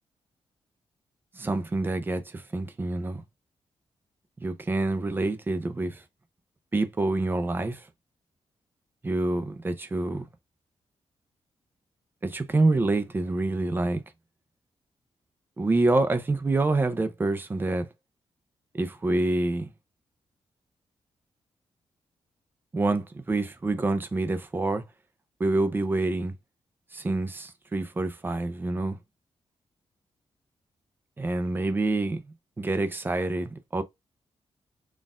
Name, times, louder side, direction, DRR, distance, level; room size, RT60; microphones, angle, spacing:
voice 1, 1.4-3.2 4.4-6.0 6.7-7.9 9.0-10.2 12.2-14.0 15.6-17.9 18.7-19.7 22.7-24.8 25.4-26.3 26.9-29.0 31.2-32.2 32.6-33.8, right 2 dB, 20° right, 0.5 m, -27 dB
4.1 x 2.5 x 3.5 m
wide cardioid pair, 160°, 11 cm